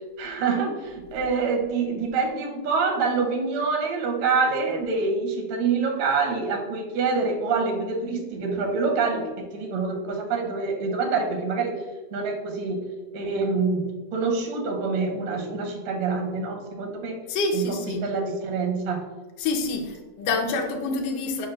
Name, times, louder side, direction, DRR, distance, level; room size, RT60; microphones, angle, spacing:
voice 1, 0.2-11.9 12.1-12.8 13.1-17.2 17.5-17.8 18.0-19.0, right 4 dB, 75° right, 1 dB, 1.9 m, -26 dB
voice 2, 17.3-18.0 19.4-21.5, left 3 dB, 75° left, 2 dB, 1.5 m, -27 dB
4.4 x 4.4 x 2.5 m, 1.2 s
omnidirectional pair, 3.4 m